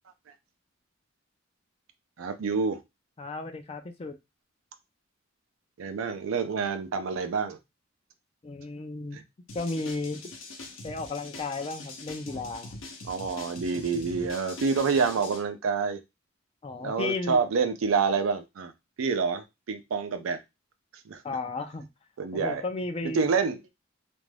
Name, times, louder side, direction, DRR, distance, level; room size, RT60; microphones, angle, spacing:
voice 1, 2.2-2.8 5.8-7.6 9.1-9.2 13.1-16.0 16.8-18.7 19.0-20.4 21.1-21.2 22.2-22.6 23.1-23.6, right 5 dB, 90° right, 0.4 m, -27 dB
voice 2, 3.2-4.2 8.4-9.2 9.5-10.2 10.8-12.7 16.6-17.4 21.2-21.9 22.3-23.3, left 3 dB, 30° left, 0.4 m, -34 dB
sound 1, 9.5-15.4, left 2 dB, 70° left, 0.7 m, -43 dB
2.5 x 2.2 x 3.2 m
head